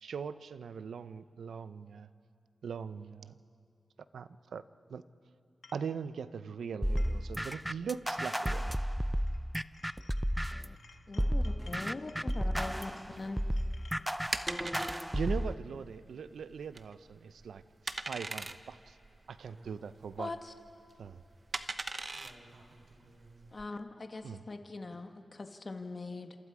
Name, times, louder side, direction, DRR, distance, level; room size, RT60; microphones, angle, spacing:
voice 1, 0.0-2.1 2.6-3.4 4.1-4.6 4.9-5.0 5.7-8.8 15.1-19.0 19.3-20.3 21.0-21.2 24.2-24.4, right 6 dB, 85° right, 13 dB, 0.7 m, -40 dB
sound 1, 5.6-5.9 6.7-7.3 7.5-9.4 9.7-14.0, left 4 dB, 70° left, 1.6 m, -59 dB
sound 2, 6.8-10.7 11.2-15.5, equal, 5° right, 0.6 m, -33 dB
voice 2, 10.2-13.2 19.4-19.8 22.1-23.5 24.9-25.0, right 2 dB, 70° right, 1 dB, 3.8 m, -58 dB
voice 3, 11.1-12.9 13.2-13.4 20.2-20.5 23.5-26.3, left 3 dB, 40° left, 5 dB, 1.5 m, -42 dB
sound 3, 13.0-23.7, right 3 dB, 40° right, 1.0 m, -42 dB
29.0 x 27.5 x 4.9 m, 2.4 s
cardioid pair, 65°, 0 cm